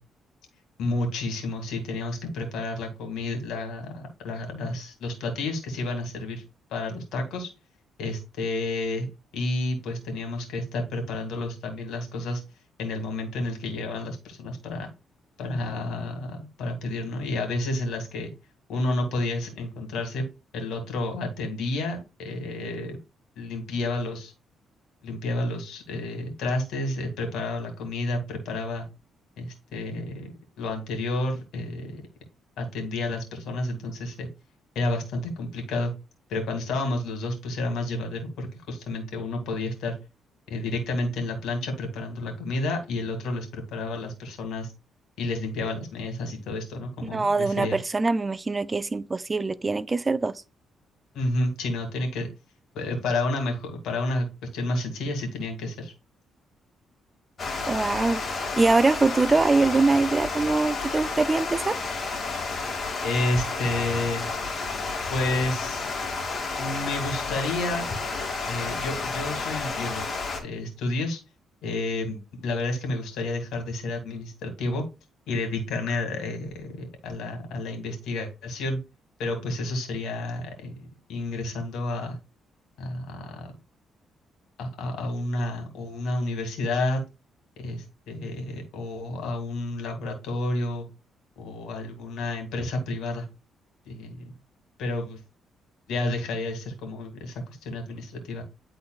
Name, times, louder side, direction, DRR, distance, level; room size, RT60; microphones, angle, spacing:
voice 1, 0.8-6.4 6.7-7.5 8.0-9.1 9.3-12.4 12.8-14.9 15.4-18.3 18.7-20.2 20.5-23.0 23.4-24.3 25.0-28.9 29.4-30.3 30.6-32.0 32.6-34.3 34.8-35.9 36.3-40.0 40.5-44.7 45.2-47.8 51.1-52.3 52.7-54.3 54.5-55.9 63.0-64.3 65.1-65.9 66.6-67.9 68.5-70.1 70.4-71.2 71.6-74.8 75.3-78.8 79.2-82.2 82.8-83.5 84.6-87.0 87.6-90.9 91.4-93.3 93.9-94.3 94.8-95.2 95.9-98.4, left 2 dB, 80° left, 2.2 m, -30 dB
voice 2, 47.0-50.4 57.7-61.8, right 3 dB, 25° right, 0.4 m, -23 dB
Water, 57.4-70.4, left 4 dB, 45° left, 2.1 m, -31 dB
10.5 x 3.8 x 2.3 m
cardioid pair, 90°, 0 cm